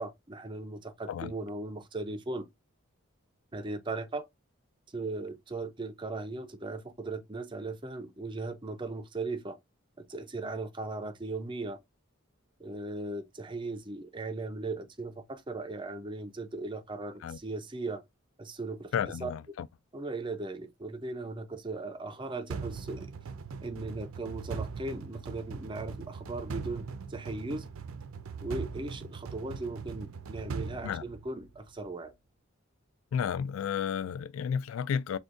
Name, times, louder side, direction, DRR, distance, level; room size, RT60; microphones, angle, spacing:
voice 1, 0.0-2.5 3.5-4.2 4.9-9.6 10.0-11.8 12.6-18.0 18.4-18.9 19.2-19.3 19.9-23.1 23.6-27.7 28.4-32.1, right 2 dB, 25° right, 0.4 m, -38 dB
voice 2, 18.9-19.7 30.8-31.0 33.1-35.2, left 7 dB, 75° left, 0.3 m, -32 dB
sound 1, 22.5-31.7, right 5 dB, 80° right, 0.5 m, -40 dB
6.1 x 2.2 x 2.5 m
head